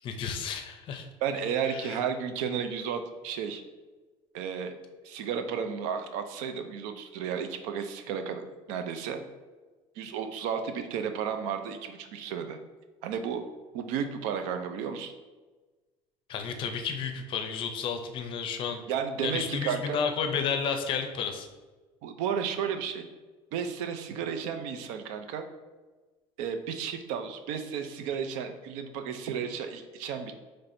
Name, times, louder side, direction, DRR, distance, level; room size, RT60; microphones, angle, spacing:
voice 1, 0.0-1.1 1.6-2.0 16.3-18.8 19.2-21.5, left 6 dB, 45° left, 6 dB, 0.5 m, -32 dB
voice 2, 1.2-3.6 4.3-4.7 5.0-9.2 10.0-12.6 13.0-13.4 13.7-15.1 18.9-20.0 22.0-23.0 23.5-25.5 26.4-30.3, right 7 dB, 90° right, 7 dB, 0.5 m, -33 dB
5.7 x 3.2 x 2.6 m, 1.3 s
cardioid pair, 145°, 12 cm